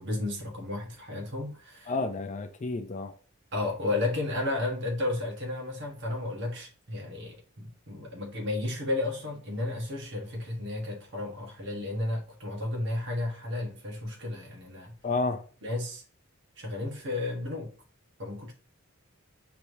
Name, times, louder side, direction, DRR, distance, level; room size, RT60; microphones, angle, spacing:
voice 1, 0.0-1.9 3.5-14.9 15.6-16.0 16.6-17.7 18.2-18.5, left 2 dB, 55° right, 1.4 m, -33 dB
voice 2, 1.9-3.1 15.0-15.4, left 3 dB, 35° left, 0.4 m, -30 dB
5.5 x 3.3 x 2.7 m
head